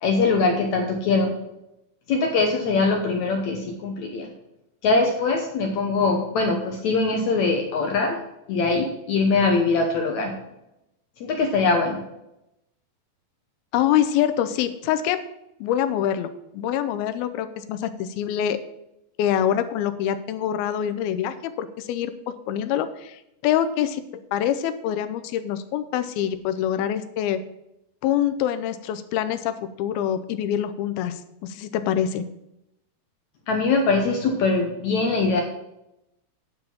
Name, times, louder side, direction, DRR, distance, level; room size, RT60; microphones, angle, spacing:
voice 1, 0.0-1.3 2.1-4.3 4.8-8.2 8.5-10.3 11.2-12.0 33.5-35.4, left 3 dB, 70° left, 2 dB, 1.8 m, -22 dB
voice 2, 13.7-15.2 15.6-18.6 19.2-22.1 22.5-24.0 24.3-27.4 28.0-32.3, left 10 dB, 90° left, 11 dB, 2.5 m, -25 dB
9.9 x 4.9 x 7.0 m, 0.86 s
omnidirectional pair, 4.3 m